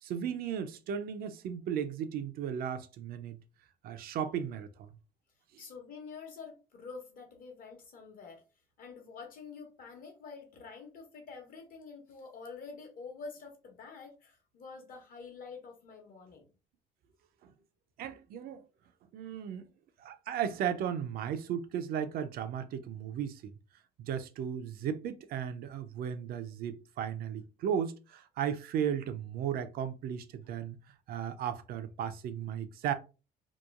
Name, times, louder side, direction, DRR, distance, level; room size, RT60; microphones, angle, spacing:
voice 1, 0.0-3.4 3.8-4.9 17.4-17.5 18.0-18.6 19.1-19.7 20.0-23.5 24.0-30.8 31.1-32.9, right 8 dB, 60° right, 0.4 m, -35 dB
voice 2, 5.6-8.4 8.8-16.5, left 5 dB, 55° left, 0.9 m, -47 dB
2.9 x 2.2 x 2.3 m
cardioid pair, 110°, 17 cm